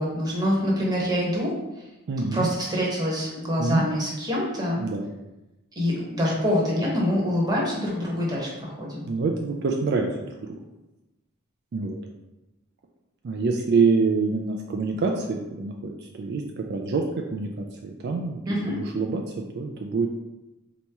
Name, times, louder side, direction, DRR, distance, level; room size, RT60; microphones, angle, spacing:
voice 1, 0.0-1.9 2.3-4.8 5.8-9.0 18.5-18.8, equal, 20° right, -4 dB, 1.0 m, -25 dB
voice 2, 2.1-2.5 3.6-3.8 4.8-5.1 9.1-10.5 11.7-12.0 13.2-18.4 18.7-20.1, right 4 dB, 50° right, 2 dB, 0.4 m, -26 dB
4.2 x 3.0 x 3.4 m, 1.0 s
head